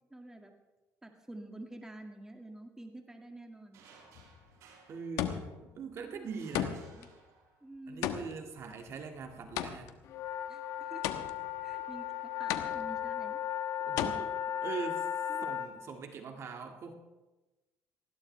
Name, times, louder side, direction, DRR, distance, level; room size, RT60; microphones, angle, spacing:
voice 1, 0.1-0.5 1.0-3.8 6.0-7.1 7.6-8.1 10.5-11.1 11.6-13.4 15.3-15.5, right 1 dB, 10° right, 3 dB, 2.0 m, -49 dB
sound 1, 3.7-5.7 6.2-7.8, right 4 dB, 75° right, 5.6 m, -60 dB
sound 2, 4.2-4.5 5.2-5.7 6.5-7.1 8.0-10.1 11.0-11.6 12.5-13.1 14.0-14.1, left 11 dB, 85° left, 1.1 m, -35 dB
voice 2, 4.9-6.9 7.9-9.9 13.8-15.1 15.4-16.9, right 5 dB, 55° right, 4 dB, 1.9 m, -42 dB
sound 3, 10.1-15.7, left 10 dB, 65° left, 1.2 m, -36 dB
19.5 x 16.0 x 3.3 m, 1.1 s
cardioid pair, 105°, 6 cm